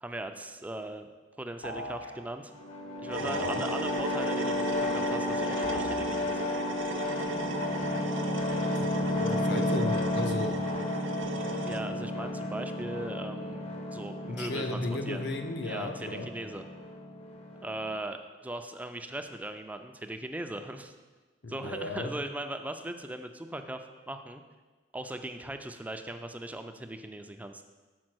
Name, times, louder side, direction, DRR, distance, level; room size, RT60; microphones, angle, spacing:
voice 1, 0.0-1.1 1.4-2.5 3.0-6.5 11.7-14.8 15.1-15.3 15.6-16.7 17.6-18.2 18.4-20.9 21.5-23.8 24.1-24.4 24.9-27.6, right 1 dB, 10° right, 7 dB, 0.4 m, -39 dB
sound 1, 1.6-2.1 5.6-6.1, equal, 85° left, 1.2 m, -38 dB
sound 2, 2.5-17.9, left 1 dB, 35° left, 0.7 m, -33 dB
sound 3, 3.1-11.8, right 2 dB, 85° right, 0.7 m, -36 dB
voice 2, 3.2-3.6 8.7-10.6 14.2-16.3 21.4-22.1, left 2 dB, 65° left, 5 dB, 0.7 m, -35 dB
6.3 x 4.7 x 6.0 m, 1.3 s
head